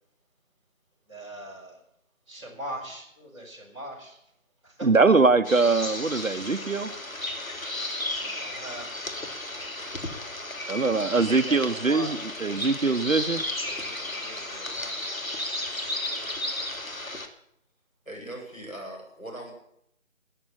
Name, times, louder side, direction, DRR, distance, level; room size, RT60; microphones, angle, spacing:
voice 1, 1.1-1.8 2.3-4.2 4.6-4.9 8.2-8.9 11.3-12.7 13.6-14.9, right 1 dB, 20° right, -6 dB, 5.0 m, -41 dB
voice 2, 4.8-6.9 10.7-13.4, right 4 dB, 75° right, 9 dB, 1.0 m, -22 dB
sound 1, 5.4-17.3, left 1 dB, 80° left, 2.8 m, -34 dB
voice 3, 18.0-19.5, right 1 dB, 5° left, -15 dB, 7.4 m, -40 dB
13.0 x 9.9 x 9.9 m, 0.74 s
figure-of-eight pair, 165°, 40 cm